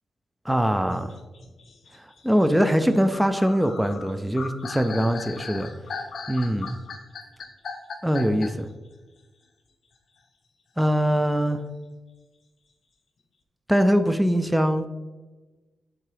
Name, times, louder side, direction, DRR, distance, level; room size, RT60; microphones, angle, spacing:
voice 1, 0.5-1.1 2.2-5.7 6.3-6.7 8.0-8.7 10.8-11.6 13.7-14.9, equal, 5° right, 8 dB, 0.3 m, -22 dB
sound 1, 0.9-8.7, left 4 dB, 55° left, 0.8 m, -38 dB
7.4 x 3.6 x 4.9 m, 1.2 s
wide cardioid pair, 155°, 0 cm